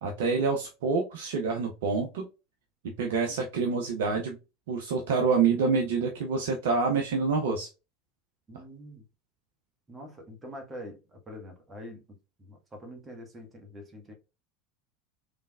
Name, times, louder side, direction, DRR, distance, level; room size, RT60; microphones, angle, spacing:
voice 1, 0.0-2.3 3.0-4.4 4.7-7.7, right 4 dB, 65° right, 0.6 m, -27 dB
voice 2, 8.5-9.0 9.9-14.1, equal, 20° right, 1.5 m, -45 dB
3.8 x 3.3 x 2.4 m
figure-of-eight pair, 75°, 0 cm